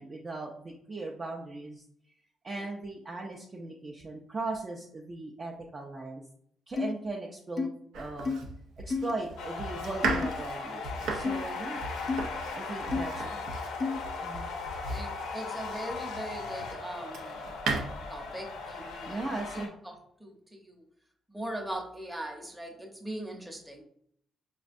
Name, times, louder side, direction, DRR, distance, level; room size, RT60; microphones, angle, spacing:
voice 1, 0.0-1.8 2.4-6.2 6.7-8.3 8.8-11.8 12.5-13.2 14.2-14.5 19.1-19.7, right 2 dB, 35° right, -1 dB, 0.5 m, -38 dB
sound 1, 6.8-6.9 7.6-7.7 8.3-8.4 8.9-9.1 10.0-10.3 11.2-11.4 12.1-12.2 12.9-13.0 13.8-14.0, left 4 dB, 40° left, 0.4 m, -30 dB
Domestic sounds home sounds, 7.9-16.1 16.7-17.8, right 3 dB, 80° right, 0.5 m, -36 dB
sound 2, 9.4-19.7, left 4 dB, 85° left, 0.6 m, -38 dB
voice 2, 14.8-17.4 18.1-20.8 21.3-23.8, right 1 dB, 10° right, 1 dB, 0.8 m, -41 dB
4.9 x 2.2 x 2.5 m, 0.67 s
cardioid pair, 90°, 0 cm